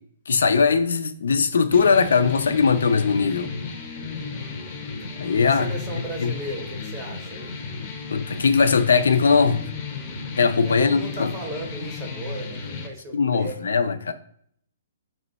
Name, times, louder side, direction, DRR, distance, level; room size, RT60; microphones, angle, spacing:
voice 1, 0.3-3.5 5.2-5.7 6.2-6.3 8.1-9.6 10.4-11.3 13.1-14.1, left 5 dB, 85° left, 0.4 m, -20 dB
sound 1, 1.7-12.9, left 4 dB, 25° left, 0.5 m, -34 dB
voice 2, 4.0-4.8 5.4-7.6 10.6-14.0, right 2 dB, 15° right, 0.6 m, -36 dB
3.0 x 2.0 x 4.0 m
hypercardioid pair, 170°, 0 cm